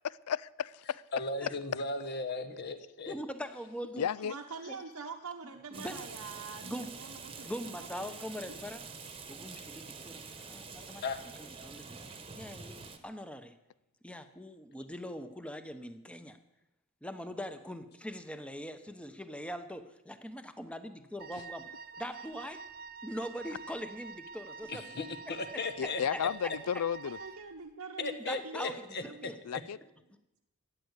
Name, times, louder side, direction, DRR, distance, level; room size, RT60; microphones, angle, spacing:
voice 1, 0.0-1.0 4.0-4.3 25.8-27.2 29.4-29.8, left 8 dB, 75° left, 21 dB, 0.4 m, -33 dB
voice 2, 1.1-3.1 11.0-11.2 24.7-26.0 28.0-29.0, left 3 dB, 50° left, 9 dB, 1.3 m, -36 dB
voice 3, 3.1-4.1 4.7-4.8 5.7-6.0 6.6-6.9 7.4-8.8 9.3-11.0 11.4-12.0 12.3-13.5 14.0-16.4 17.0-21.6 22.0-22.6 23.0-24.9 25.3-26.5 28.3-29.4, equal, 5° left, 9 dB, 0.9 m, -42 dB
voice 4, 4.2-8.6 27.0-29.3, right 4 dB, 80° right, 1 dB, 1.0 m, -45 dB
Rain, 5.7-13.0, right 5 dB, 25° right, 1.2 m, -46 dB
Wind instrument woodwind instrument, 21.2-27.5, right 5 dB, 40° right, 0.6 m, -47 dB
13.5 x 9.4 x 8.2 m, 0.94 s
head